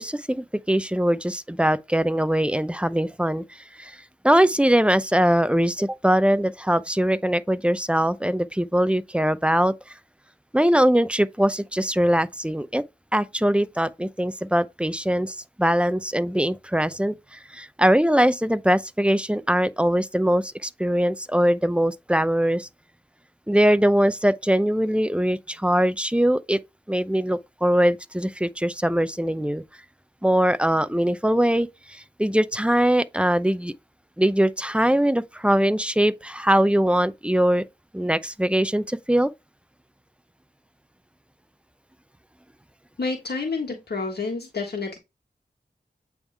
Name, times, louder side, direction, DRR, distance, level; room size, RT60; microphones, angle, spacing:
voice 1, 0.0-9.7 10.5-12.8 13.1-22.7 23.5-26.6 26.9-29.6 30.2-33.7 34.2-37.6 37.9-39.3, equal, 5° right, 0.5 m, -22 dB
voice 2, 43.0-45.0, left 4 dB, 75° left, 1.5 m, -29 dB
8.2 x 3.6 x 3.3 m
wide cardioid pair, 55°, 17 cm